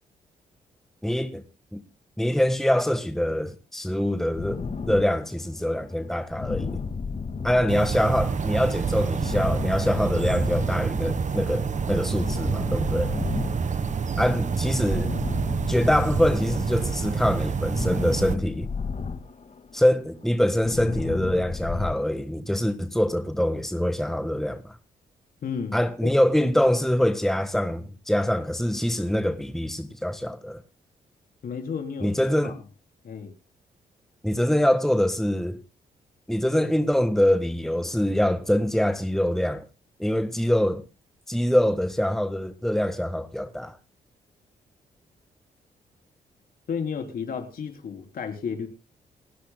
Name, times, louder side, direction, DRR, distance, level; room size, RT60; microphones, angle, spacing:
voice 1, 1.0-1.4 1.7-1.8 2.2-6.8 7.4-13.1 14.2-15.1 15.7-18.7 19.7-24.7 25.7-30.6 32.0-32.6 34.2-35.6 36.3-39.6 40.0-40.8 41.3-43.8, left 1 dB, ahead, 1.4 m, -24 dB
sound 1, 4.3-17.0 17.2-21.9, left 5 dB, 45° left, 1.9 m, -34 dB
sound 2, 7.7-18.4, right 5 dB, 50° right, 1.3 m, -27 dB
voice 2, 25.4-25.8 26.0-26.1 31.4-32.1 32.4-32.5 33.0-33.3 46.7-48.7, left 6 dB, 65° left, 3.6 m, -32 dB
29.0 x 10.0 x 2.2 m
supercardioid pair, 55°, 16 cm